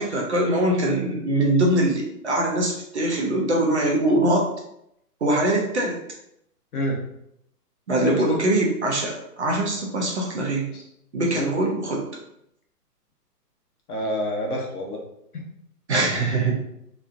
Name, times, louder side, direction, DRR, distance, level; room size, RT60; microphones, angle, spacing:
voice 1, 0.0-4.5 5.2-6.0 7.9-10.7 11.1-12.0 15.9-16.6, right 1 dB, 45° right, -1 dB, 0.5 m, -22 dB
voice 2, 13.9-15.0 15.3-15.4, left 1 dB, 65° left, -1 dB, 0.9 m, -28 dB
2.9 x 2.3 x 2.4 m, 0.77 s
hypercardioid pair, 165°, 48 cm